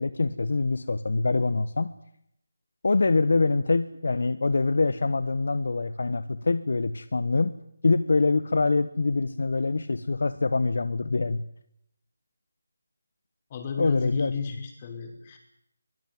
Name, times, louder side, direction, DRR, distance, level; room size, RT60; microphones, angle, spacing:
voice 1, 0.0-1.9 2.8-7.6 7.8-11.4 13.8-14.3, left 3 dB, 65° left, 14 dB, 1.3 m, -24 dB
voice 2, 13.5-15.4, left 6 dB, 30° left, 5 dB, 5.4 m, -34 dB
23.5 x 17.5 x 9.4 m, 0.75 s
figure-of-eight pair, 160°, 0 cm